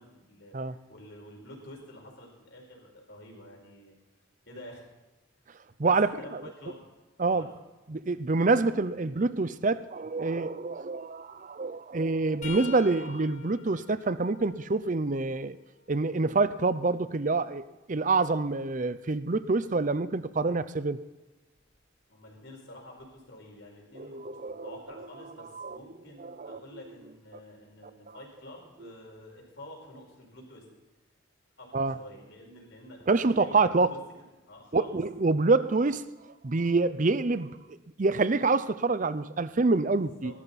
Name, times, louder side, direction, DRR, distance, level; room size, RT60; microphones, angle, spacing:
voice 1, 0.0-4.0 4.5-4.9 5.8-6.8 7.2-7.5 22.1-30.6 31.6-33.1 33.4-34.0 34.4-35.0 39.9-40.4, left 1 dB, 60° left, 5.0 m, -49 dB
voice 2, 5.8-6.4 7.2-7.5 7.9-15.6 15.9-17.6 17.9-21.0 24.0-24.7 25.6-25.8 26.2-26.6 31.7-32.0 33.1-33.9 34.7-36.1 36.4-37.6 38.0-40.3, right 3 dB, 40° right, 0.6 m, -26 dB
sound 1, 12.4-16.2 16.7-18.7 21.6-21.8 23.0-23.2 24.5-24.6, left 6 dB, 35° left, 2.1 m, -48 dB
18.5 x 13.5 x 4.2 m
head